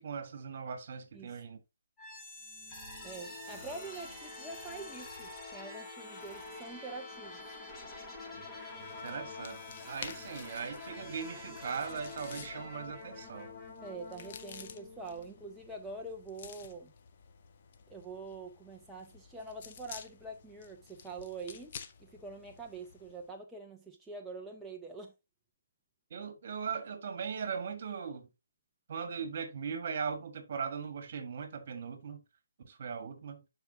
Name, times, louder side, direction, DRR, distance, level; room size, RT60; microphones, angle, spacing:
voice 1, 0.0-1.6 9.0-13.5 26.1-28.3 28.9-32.2 32.6-33.4, right 6 dB, 50° right, 1.6 m, -39 dB
sound 1, 2.0-15.8, left 3 dB, 10° left, 2.4 m, -47 dB
voice 2, 3.0-7.4 13.8-16.9 17.9-21.7 22.0-25.1, right 3 dB, 5° right, 0.8 m, -45 dB
sound 2, 8.6-23.3, left 7 dB, 40° left, 1.0 m, -52 dB
12.0 x 4.8 x 2.7 m
figure-of-eight pair, 150°, 0 cm